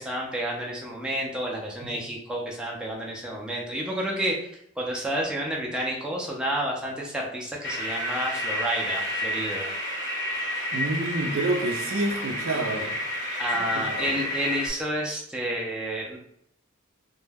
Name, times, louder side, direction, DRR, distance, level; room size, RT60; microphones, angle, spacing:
voice 1, 0.0-4.5 4.8-9.7 13.4-16.2, right 1 dB, 5° right, -2 dB, 0.4 m, -30 dB
sound 1, 7.6-14.7, left 1 dB, 55° left, 0.7 m, -30 dB
voice 2, 10.7-13.0 13.5-14.2, right 2 dB, 85° right, 2 dB, 0.4 m, -29 dB
2.2 x 2.1 x 3.2 m, 0.71 s
head